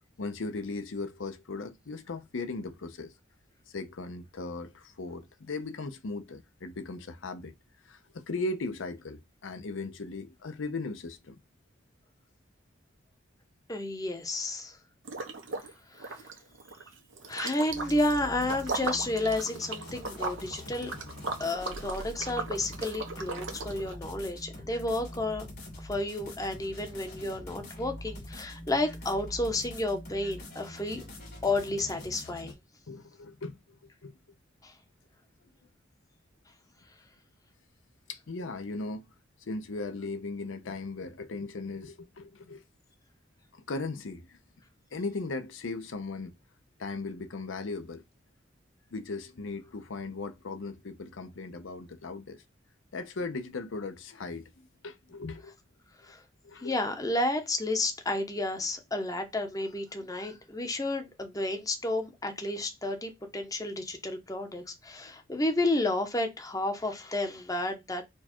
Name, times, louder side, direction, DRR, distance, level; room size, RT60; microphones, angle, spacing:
voice 1, 0.2-3.1 3.7-7.5 7.9-11.4 32.9-33.6 34.0-34.1 38.1-39.0 39.4-42.6 43.7-44.4 44.9-46.3 46.8-48.0 48.9-52.4 52.9-54.5 54.8-55.5 56.4-56.7 60.3-60.4, left 3 dB, 90° left, 0.6 m, -37 dB
voice 2, 13.7-14.8 15.9-16.2 17.3-20.9 21.4-25.5 25.8-31.0 31.4-32.6 34.6-34.7 56.0-56.2 56.6-68.0, left 2 dB, 20° left, 0.8 m, -31 dB
Liquid, 15.0-15.7 16.0-23.9, right 3 dB, 80° right, 0.9 m, -38 dB
sound 1, 17.7-32.5, left 1 dB, 55° left, 2.4 m, -44 dB
4.6 x 2.3 x 4.3 m
head